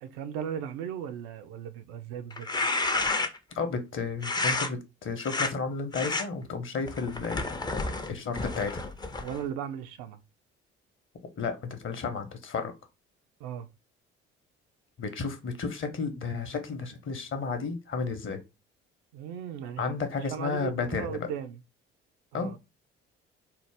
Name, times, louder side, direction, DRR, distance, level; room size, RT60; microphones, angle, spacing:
voice 1, 0.0-2.5 9.2-10.2 13.4-13.7 19.1-21.6 22.3-22.6, right 8 dB, 75° right, 0.5 m, -37 dB
sound 1, 2.3-3.5 4.2-4.7 5.2-5.5 5.9-6.2 6.9-9.4, left 3 dB, 15° left, 0.4 m, -30 dB
voice 2, 3.5-7.4 8.1-8.8 11.4-12.7 15.0-18.4 19.8-21.2 22.3-22.5, left 4 dB, 40° left, 0.8 m, -32 dB
2.7 x 2.0 x 3.3 m
hypercardioid pair, 55°, 31 cm